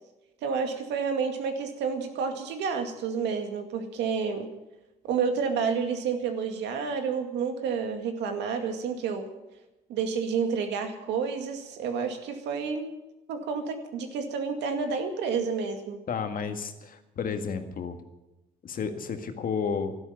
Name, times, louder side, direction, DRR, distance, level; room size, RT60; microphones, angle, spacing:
voice 1, 0.4-4.5 5.0-9.3 9.9-12.9 13.3-16.0, right 5 dB, 85° right, 6 dB, 2.2 m, -30 dB
voice 2, 16.1-18.0 18.6-20.0, left 6 dB, 55° left, 7 dB, 1.8 m, -32 dB
12.5 x 11.5 x 9.3 m, 0.99 s
cardioid pair, 95°, 17 cm